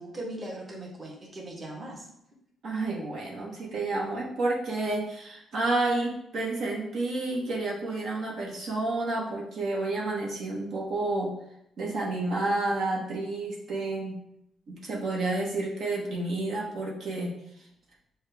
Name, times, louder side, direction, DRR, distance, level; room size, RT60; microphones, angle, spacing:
voice 1, 0.0-2.1, right 1 dB, 30° right, -2 dB, 1.2 m, -39 dB
voice 2, 2.6-11.3 11.8-14.2 14.7-17.3, right 2 dB, 70° right, -3 dB, 1.1 m, -30 dB
6.4 x 2.3 x 3.4 m, 0.78 s
cardioid pair, 90°, 0 cm